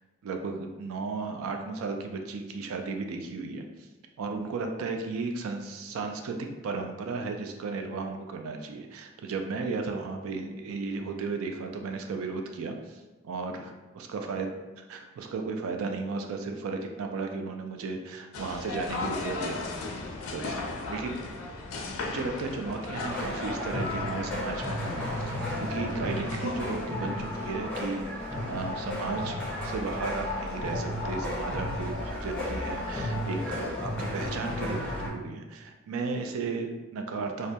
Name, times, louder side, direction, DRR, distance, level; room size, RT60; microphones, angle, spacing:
voice 1, 0.2-3.9 4.2-14.5 14.8-19.6 20.3-21.3 22.0-28.0 28.5-37.5, right 4 dB, 80° right, 4 dB, 0.3 m, -35 dB
sound 1, 18.3-26.8, left 3 dB, 75° left, 0.4 m, -36 dB
sound 2, 23.1-35.1, left 1 dB, 5° left, 0.6 m, -33 dB
2.1 x 2.1 x 2.7 m, 1.1 s
head